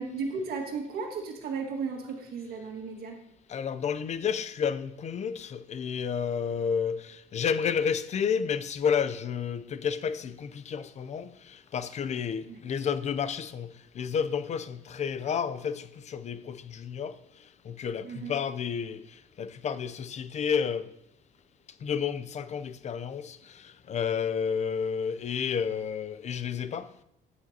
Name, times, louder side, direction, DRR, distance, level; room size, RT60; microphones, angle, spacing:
voice 1, 0.0-3.2 12.5-12.6 18.0-18.4, right 4 dB, 65° right, 1.8 m, -35 dB
voice 2, 3.5-13.7 13.9-17.2 17.6-20.9 21.8-27.0, left 7 dB, 45° left, 0.5 m, -31 dB
9.4 x 8.9 x 2.8 m
cardioid pair, 110°, 17 cm